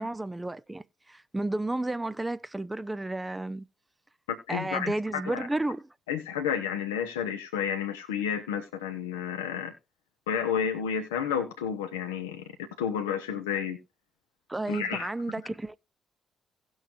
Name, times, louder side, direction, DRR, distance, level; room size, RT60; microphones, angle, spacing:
voice 1, 0.0-3.7 4.5-5.9 14.5-15.8, right 2 dB, 15° right, 0.6 m, -32 dB
voice 2, 4.5-4.9 5.3-5.5 6.1-9.7 10.3-12.4 12.8-13.8 14.7-15.1, left 8 dB, 80° left, 0.8 m, -31 dB
17.5 x 6.3 x 2.5 m
figure-of-eight pair, 40°, 0 cm